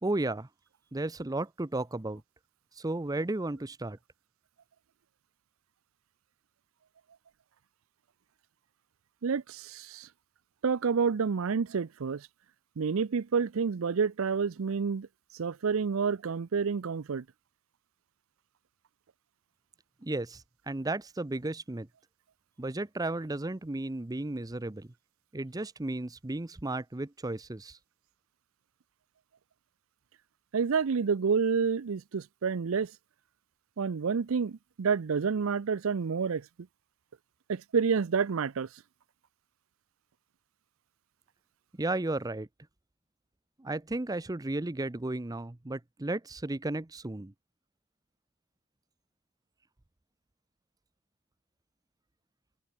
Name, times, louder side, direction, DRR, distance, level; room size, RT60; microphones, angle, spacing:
voice 1, 0.0-0.5 0.9-2.2 2.8-4.0 20.0-21.9 22.6-24.9 25.3-27.8 41.8-42.5 43.6-47.3, right 2 dB, 15° right, 0.6 m, -34 dB
voice 2, 9.2-10.1 10.6-12.3 12.8-15.1 15.3-17.2 30.5-32.9 33.8-36.4 37.5-38.7, right 5 dB, 70° right, 0.5 m, -29 dB
head